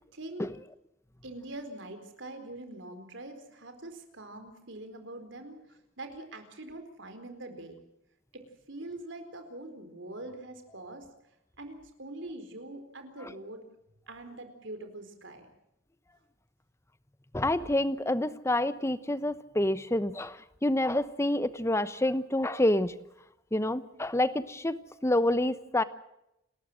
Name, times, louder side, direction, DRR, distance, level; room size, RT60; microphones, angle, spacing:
voice 1, 0.1-0.5 1.2-7.8 8.3-11.1 11.6-13.6 14.1-15.5, right 2 dB, 65° right, 7 dB, 4.3 m, -43 dB
voice 2, 17.3-22.9 23.5-25.8, left 1 dB, 15° left, 14 dB, 0.9 m, -28 dB
29.0 x 13.5 x 7.6 m, 0.84 s
head